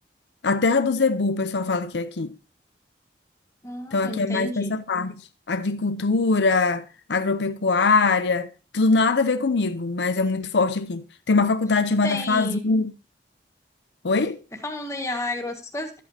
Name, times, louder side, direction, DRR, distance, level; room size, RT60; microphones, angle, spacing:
voice 1, 0.4-2.3 3.9-5.1 5.5-12.9 14.0-14.4, left 3 dB, 80° left, 0.7 m, -22 dB
voice 2, 3.6-4.8 12.0-12.7 14.6-16.0, left 1 dB, 15° left, 1.5 m, -31 dB
12.5 x 8.4 x 2.8 m
head